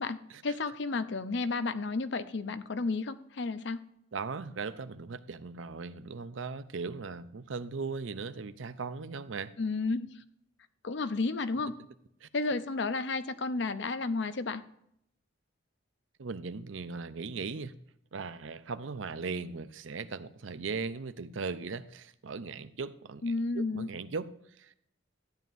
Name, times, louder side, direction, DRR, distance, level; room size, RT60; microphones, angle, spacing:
voice 1, 0.0-3.8 9.6-10.1 10.8-11.7 12.3-14.6 23.2-23.9, left 3 dB, 65° left, 12 dB, 0.6 m, -32 dB
voice 2, 4.1-9.5 12.2-12.3 16.2-17.7 18.1-24.7, right 4 dB, 85° right, 13 dB, 0.6 m, -38 dB
13.0 x 9.2 x 2.6 m, 0.73 s
head